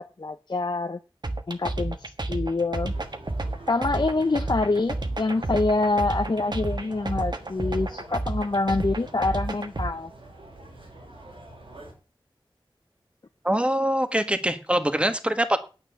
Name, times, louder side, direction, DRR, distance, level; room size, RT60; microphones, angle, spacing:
voice 1, 0.2-1.0 1.5-2.9 3.7-10.1, left 3 dB, 55° left, 6 dB, 0.8 m, -26 dB
sound 1, 1.2-9.9, right 2 dB, 55° right, 1.5 m, -30 dB
sound 2, 2.8-11.9, right 1 dB, 85° right, 6.1 m, -46 dB
voice 2, 13.4-15.6, right 1 dB, 15° right, 9 dB, 1.6 m, -23 dB
9.7 x 8.8 x 6.9 m, 0.33 s
wide cardioid pair, 65°, 9 cm